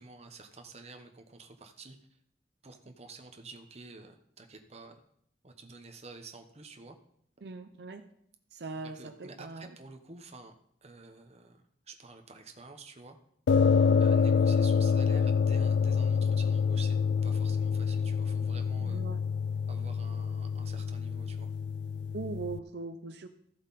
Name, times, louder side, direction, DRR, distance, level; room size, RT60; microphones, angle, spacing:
voice 1, 0.0-2.2 2.6-5.0 5.4-7.0 8.8-10.6 10.8-13.2 14.0-17.0 17.2-19.0 19.7-21.5, right 3 dB, 40° right, 5 dB, 1.1 m, -49 dB
voice 2, 7.4-8.0 8.5-9.7 13.7-14.0 18.8-19.2 22.1-23.3, right 3 dB, 70° right, 8 dB, 0.6 m, -40 dB
sound 1, 13.5-22.6, left 6 dB, 75° left, 0.3 m, -27 dB
14.0 x 7.7 x 4.2 m, 0.70 s
head